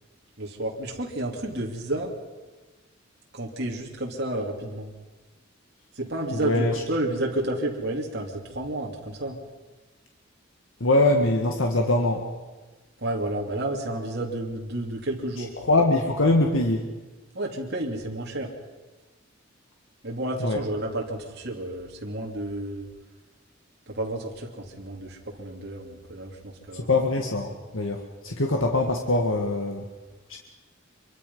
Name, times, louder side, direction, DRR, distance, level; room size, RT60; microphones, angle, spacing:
voice 1, 0.4-2.1 3.3-4.9 5.9-9.4 13.0-15.5 17.3-18.5 20.0-22.9 23.9-26.9, right 1 dB, 55° right, -1 dB, 3.1 m, -31 dB
voice 2, 6.4-6.7 10.8-12.3 15.6-16.9 20.4-20.6 26.7-29.8 30.3-30.4, left 2 dB, 80° left, 2 dB, 1.9 m, -23 dB
25.5 x 24.0 x 5.6 m, 1.2 s
head